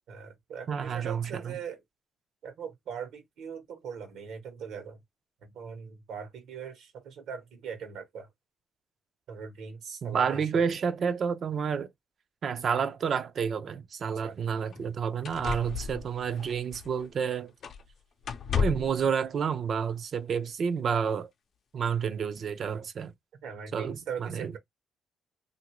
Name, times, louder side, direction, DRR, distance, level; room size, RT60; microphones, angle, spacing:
voice 1, 0.1-1.8 2.4-5.0 5.4-8.3 9.3-10.6 14.2-14.4 23.4-24.6, right 7 dB, 80° right, 1.2 m, -40 dB
voice 2, 0.7-1.6 10.0-11.9 12.4-17.5 18.6-21.3 21.7-23.1 23.7-24.5, right 6 dB, 55° right, 0.5 m, -30 dB
sound 1, 14.0-14.1 14.7-14.8 15.2-17.2 17.6-17.9 18.2-19.0 20.1-20.2, left 7 dB, 60° left, 0.6 m, -33 dB
2.8 x 2.6 x 3.0 m
cardioid pair, 90°, 0 cm